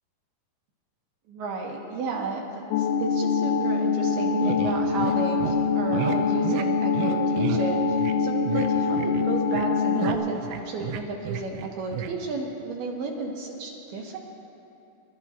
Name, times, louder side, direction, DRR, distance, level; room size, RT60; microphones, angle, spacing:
voice 1, 1.3-14.2, right 3 dB, 70° right, -1 dB, 2.8 m, -33 dB
sound 1, 2.7-10.2, left 4 dB, 80° left, 2.5 m, -24 dB
sound 2, 4.4-5.2 5.4-5.5 5.9-6.2 6.4-6.6 6.9-7.6 8.0-8.2 8.5-8.7 9.0-9.7 9.9-11.7 11.9-12.1, right 10 dB, 85° right, 2.9 m, -31 dB
28.0 x 13.0 x 2.8 m, 2.7 s
omnidirectional pair, 5.3 m